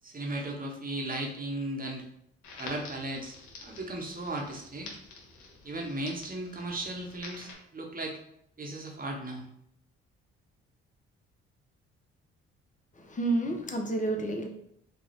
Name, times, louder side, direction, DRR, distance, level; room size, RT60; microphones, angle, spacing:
voice 1, 0.0-2.0 2.6-4.9 5.6-8.2 8.6-9.4, right 1 dB, 25° right, 1 dB, 1.0 m, -36 dB
Crackle, 2.4-7.5, left 3 dB, 65° left, 0.9 m, -48 dB
voice 2, 12.9-14.5, right 2 dB, 25° left, 3 dB, 0.8 m, -30 dB
2.9 x 2.3 x 4.2 m, 0.74 s
hypercardioid pair, 50°, 31 cm